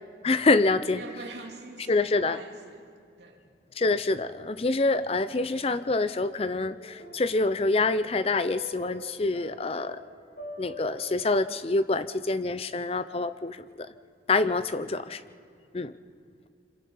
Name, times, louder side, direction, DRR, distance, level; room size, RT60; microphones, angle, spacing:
voice 1, 0.2-1.0 1.9-2.4 3.8-10.0 10.6-13.9 14.3-15.2 15.7-15.9, left 3 dB, 35° left, 13 dB, 0.6 m, -26 dB
voice 2, 0.9-2.8 3.2-3.4, right 2 dB, 80° right, 0 dB, 2.9 m, -43 dB
sound 1, 5.9-6.2 6.5-11.0, left 2 dB, 55° left, 3.6 m, -45 dB
26.5 x 26.0 x 5.6 m, 2.3 s
head